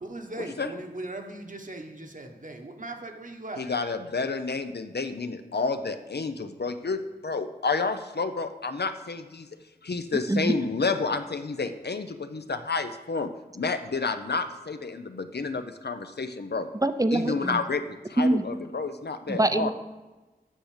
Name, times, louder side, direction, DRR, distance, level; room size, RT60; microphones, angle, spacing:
voice 1, 0.0-3.7, right 2 dB, 50° right, 3 dB, 1.1 m, -39 dB
voice 2, 3.6-9.5 9.8-13.3 13.5-16.7 17.1-19.7, left 4 dB, 80° left, 8 dB, 0.6 m, -30 dB
voice 3, 16.8-17.6 18.2-18.5 19.3-19.7, right 1 dB, 20° right, 10 dB, 0.5 m, -24 dB
8.9 x 6.6 x 5.0 m, 1.2 s
wide cardioid pair, 50°, 17 cm